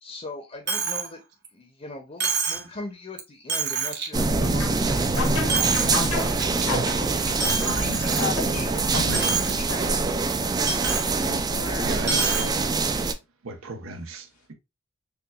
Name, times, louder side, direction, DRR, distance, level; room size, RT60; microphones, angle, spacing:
voice 1, 0.0-1.2 1.5-6.1, left 2 dB, 30° left, 0.6 m, -40 dB
Coin (dropping), 0.7-1.1 1.4-1.5 2.2-2.7 3.2-3.3 3.5-4.1 4.5-5.0 5.3-6.0 6.4-6.6 7.4-8.6 8.9-9.5 9.8-9.9 10.7-11.1 12.0-12.5, right 5 dB, 55° right, 1.0 m, -27 dB
sound 1, 4.1-13.1, right 3 dB, 20° right, 0.3 m, -25 dB
sound 2, 4.4-10.3, left 3 dB, 90° left, 1.1 m, -33 dB
voice 2, 7.3-10.0 11.0-12.0, left 5 dB, 70° left, 0.6 m, -37 dB
voice 3, 8.9-9.4 9.8-9.9 11.8-12.7 13.4-14.5, right 3 dB, 90° right, 0.8 m, -35 dB
6.7 x 2.3 x 2.3 m
head